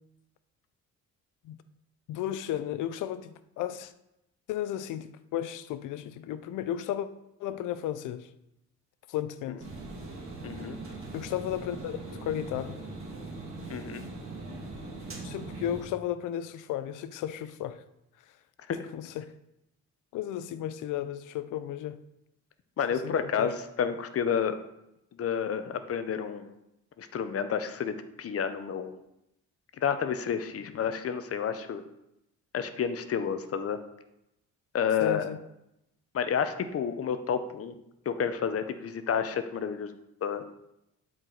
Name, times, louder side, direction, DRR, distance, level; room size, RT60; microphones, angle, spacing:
voice 1, 2.1-3.9 4.5-7.1 7.4-8.3 9.1-9.6 11.1-12.8 15.2-17.8 18.8-19.3 20.1-22.0 23.0-23.5 35.0-35.4, left 11 dB, 90° left, 13 dB, 0.6 m, -34 dB
sound 1, 9.6-15.8, right 2 dB, 45° right, 2.2 m, -41 dB
voice 2, 10.4-10.8 13.7-14.0 18.7-18.9 22.8-24.6 25.2-26.5 27.0-29.0 29.8-31.8 32.5-33.8 34.7-35.3 36.1-37.7 38.1-40.5, left 7 dB, 50° left, 10 dB, 0.8 m, -30 dB
11.5 x 4.7 x 4.0 m, 0.86 s
cardioid pair, 90°, 30 cm